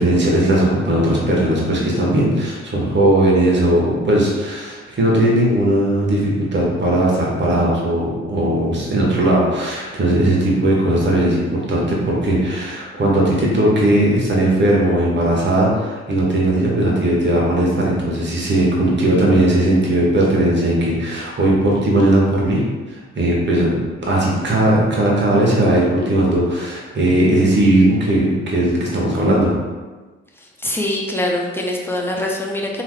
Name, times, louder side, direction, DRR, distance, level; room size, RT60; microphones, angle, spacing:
voice 1, 0.0-22.6 22.9-29.5, right 1 dB, 35° right, -3 dB, 1.1 m, -17 dB
voice 2, 30.4-32.8, left 1 dB, 5° left, -1 dB, 0.6 m, -23 dB
3.4 x 2.9 x 2.2 m, 1.3 s
hypercardioid pair, 45°, 33 cm